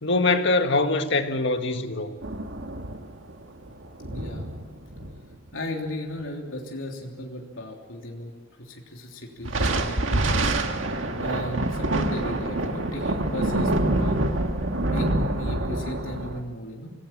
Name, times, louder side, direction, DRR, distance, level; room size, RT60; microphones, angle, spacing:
voice 1, 0.0-2.1, left 2 dB, 65° left, 7 dB, 1.8 m, -23 dB
sound 1, 2.2-5.5 9.4-16.4, right 2 dB, 70° right, 1.9 m, -26 dB
voice 2, 4.1-4.5 5.5-10.5 11.2-14.3 14.9-16.9, left 1 dB, 90° left, 0 dB, 3.2 m, -35 dB
26.0 x 18.0 x 7.5 m, 1.5 s
head